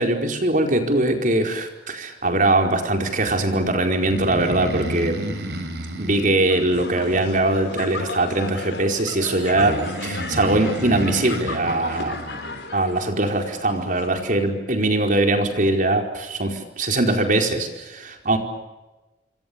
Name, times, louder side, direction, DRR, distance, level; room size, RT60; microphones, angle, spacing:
voice 1, 0.0-5.2 6.0-12.2 12.7-18.4, right 2 dB, 45° right, 4 dB, 4.8 m, -21 dB
Breathing, 4.0-7.7 9.5-12.6, equal, 65° right, 5.6 m, -32 dB
sound 1, 6.5-14.1, left 3 dB, 65° left, 5.6 m, -35 dB
28.0 x 25.5 x 7.0 m, 1.1 s
head